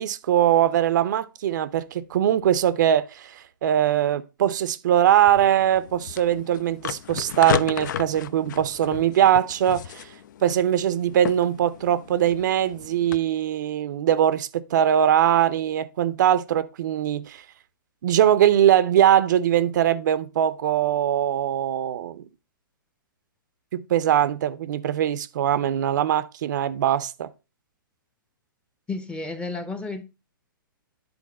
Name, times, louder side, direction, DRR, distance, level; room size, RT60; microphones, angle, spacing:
voice 1, 0.0-10.1 10.4-17.4 18.0-22.2 23.7-27.3, right 10 dB, 55° right, 0.5 m, -21 dB
sound 1, 5.3-13.2, left 10 dB, 60° left, 0.4 m, -34 dB
voice 2, 28.9-30.0, left 3 dB, 10° left, 0.7 m, -32 dB
9.6 x 4.0 x 3.9 m
hypercardioid pair, 120°, 12 cm